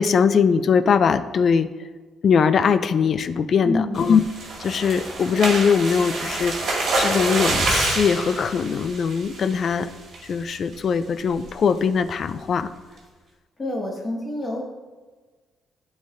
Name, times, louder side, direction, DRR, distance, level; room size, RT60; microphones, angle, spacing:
voice 1, 0.0-1.7 2.2-4.2 4.6-6.5 7.0-9.9 10.2-12.7, left 6 dB, 55° left, 13 dB, 0.3 m, -21 dB
voice 2, 3.6-4.0 13.6-14.6, left 2 dB, 30° left, -2 dB, 1.5 m, -27 dB
sound 1, 3.9-9.7 10.1-10.4 10.7-10.8 11.2-11.5, right 2 dB, 60° right, 1.7 m, -26 dB
9.5 x 4.0 x 2.5 m, 1.4 s
cardioid pair, 90°, 0 cm